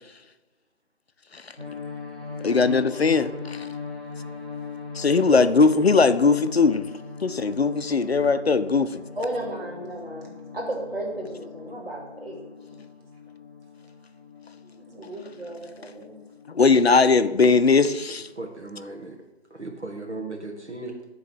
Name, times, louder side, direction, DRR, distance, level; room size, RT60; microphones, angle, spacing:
sound 1, 1.6-18.4, left 5 dB, 5° right, 1.0 m, -40 dB
voice 1, 2.4-3.7 4.9-6.9 7.2-9.0 16.5-18.3, left 4 dB, 70° left, 12 dB, 0.5 m, -19 dB
voice 2, 5.2-5.7 9.2-12.4 14.6-16.2, right 1 dB, 60° right, -2 dB, 3.1 m, -34 dB
voice 3, 18.1-19.2 19.5-21.0, right 2 dB, 85° right, 2 dB, 1.7 m, -37 dB
10.0 x 3.9 x 6.5 m, 1.1 s
figure-of-eight pair, 165°, 33 cm